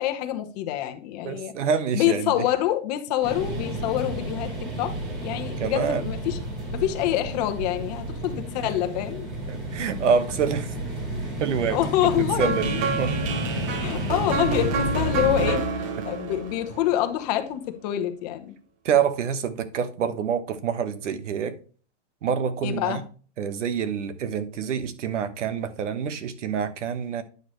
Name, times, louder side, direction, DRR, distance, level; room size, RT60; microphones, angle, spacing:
voice 1, 0.0-1.5 1.9-4.5 4.8-4.9 5.2-6.4 6.7-9.3 11.7-12.6 13.8-18.5 22.6-23.0, left 13 dB, 35° left, 1.0 m, -26 dB
voice 2, 1.2-2.3 5.6-6.0 9.5-10.7 11.4-11.8 12.4-13.1 18.8-21.5 22.2-23.0 23.4-27.2, right 7 dB, 80° right, 1.2 m, -26 dB
sound 1, 3.2-15.5, right 1 dB, 45° right, 4.3 m, -31 dB
sound 2, 12.4-17.4, right 4 dB, 20° right, 0.7 m, -29 dB
9.4 x 6.2 x 3.2 m
supercardioid pair, 165°, 36 cm